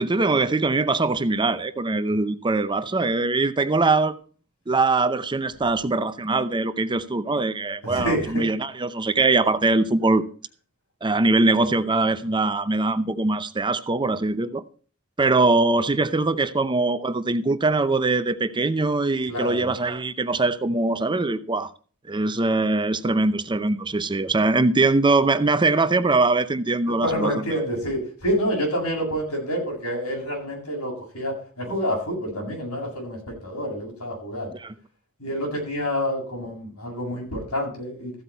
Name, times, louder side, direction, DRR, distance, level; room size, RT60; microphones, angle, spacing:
voice 1, 0.0-4.1 4.7-10.3 11.0-14.6 15.2-21.7 22.1-27.4 34.6-34.7, right 3 dB, 20° right, 0.6 m, -22 dB
voice 2, 7.8-8.4 19.3-19.7 27.0-34.5 35.2-38.1, equal, 85° left, 7.7 m, -28 dB
14.5 x 8.3 x 4.5 m
head